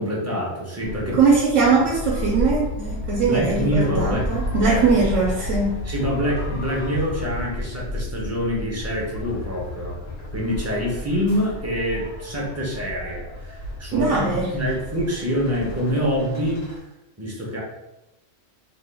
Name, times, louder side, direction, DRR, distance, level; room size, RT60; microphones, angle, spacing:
voice 1, 0.0-1.2 3.2-4.3 4.6-5.0 5.8-10.0 10.3-16.7 17.2-17.6, equal, 20° right, -4 dB, 0.4 m, -26 dB
sound 1, 0.8-16.8, left 1 dB, 80° left, 1.2 m, -32 dB
voice 2, 1.1-5.8 13.9-14.5, right 4 dB, 75° right, -3 dB, 1.0 m, -20 dB
2.8 x 2.2 x 3.3 m, 0.94 s
omnidirectional pair, 1.3 m